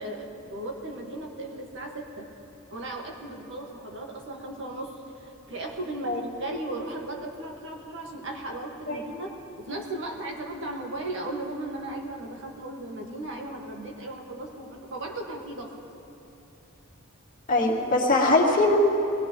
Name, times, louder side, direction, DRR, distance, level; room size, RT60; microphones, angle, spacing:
voice 1, 0.0-2.3 2.7-15.8, right 1 dB, 60° right, 0 dB, 1.8 m, -36 dB
voice 2, 17.5-18.8, left 2 dB, 40° left, -4 dB, 2.2 m, -21 dB
21.5 x 17.0 x 3.1 m, 2.8 s
head